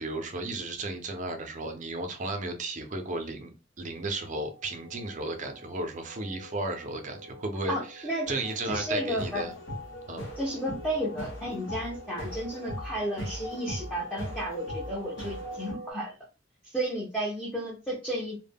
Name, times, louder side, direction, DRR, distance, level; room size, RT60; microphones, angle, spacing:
voice 1, 0.0-9.5 10.1-10.3, right 2 dB, 40° right, 0.5 m, -34 dB
sound 1, 3.9-15.9, right 2 dB, 50° left, 0.6 m, -47 dB
voice 2, 7.7-8.3 8.6-9.5 10.4-16.1 16.6-18.4, equal, 5° left, 0.5 m, -33 dB
sound 2, 8.3-15.7, equal, 75° left, 1.0 m, -39 dB
2.1 x 2.1 x 3.4 m
head